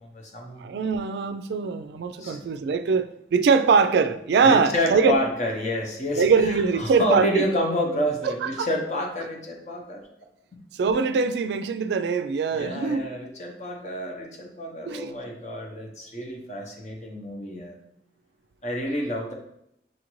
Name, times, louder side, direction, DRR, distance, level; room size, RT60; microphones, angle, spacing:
voice 1, 0.0-0.7 2.2-2.5 4.5-10.0 10.5-10.6 12.5-17.8 18.6-19.3, equal, 40° left, 1 dB, 0.7 m, -29 dB
voice 2, 0.6-5.2 6.2-7.4 8.2-8.7 10.7-13.1 14.9-15.1, right 5 dB, 75° right, 10 dB, 0.3 m, -22 dB
6.2 x 2.5 x 3.0 m, 0.76 s
head